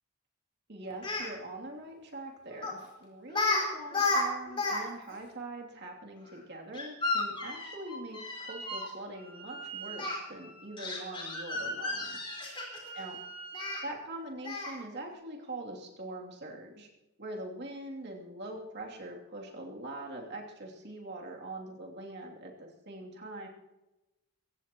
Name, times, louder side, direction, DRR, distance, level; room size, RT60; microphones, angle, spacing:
voice 1, 0.7-12.2 12.9-13.2 13.8-16.9 17.2-23.5, right 2 dB, 50° right, 0 dB, 2.9 m, -43 dB
Speech, 0.9-1.3 2.6-2.8 3.3-3.6 3.9-4.8 5.1-5.2 6.7-8.9 10.0-10.2 10.8-12.9 13.5-13.8 14.4-14.8, left 3 dB, 25° left, 4.6 m, -32 dB
Wind instrument woodwind instrument, 8.5-8.9 9.1-14.0, right 4 dB, 25° right, 1.6 m, -46 dB
23.5 x 15.5 x 3.1 m, 1.0 s
head